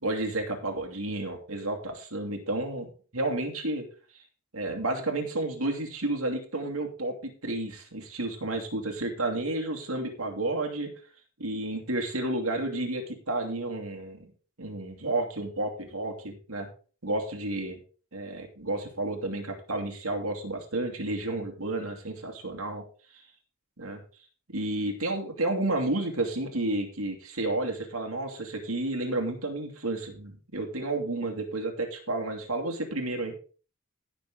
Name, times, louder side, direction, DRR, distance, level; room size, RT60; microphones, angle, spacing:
voice 1, 0.0-2.9 3.1-3.8 4.5-10.9 11.4-14.3 14.6-16.7 17.0-17.8 18.1-22.8 23.1-23.2 23.8-24.0 24.5-33.3, right 2 dB, 85° right, 2 dB, 2.5 m, -31 dB
16.5 x 6.3 x 3.8 m, 0.38 s
head